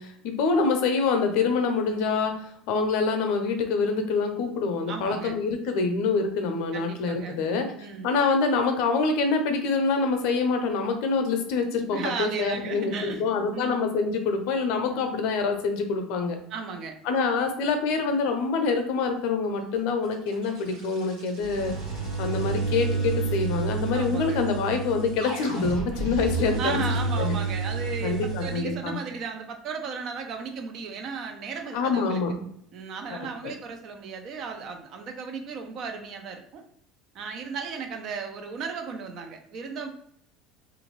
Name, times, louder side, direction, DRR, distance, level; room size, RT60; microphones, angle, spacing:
voice 1, 0.0-2.3 2.7-7.7 8.0-16.4 17.0-21.7 22.2-26.8 27.2-27.3 28.0-29.0 31.7-32.4 33.1-33.2, left 4 dB, 65° left, 5 dB, 0.6 m, -26 dB
voice 2, 4.9-5.4 6.7-7.4 7.8-8.1 11.9-13.8 14.9-15.2 16.5-17.0 23.9-24.4 26.6-32.2 32.7-36.6 37.1-39.9, right 5 dB, 55° right, 4 dB, 0.6 m, -35 dB
sound 1, 20.0-28.6, right 3 dB, 75° right, 1.1 m, -30 dB
2.6 x 2.5 x 3.0 m, 0.70 s
hypercardioid pair, 75°, 0 cm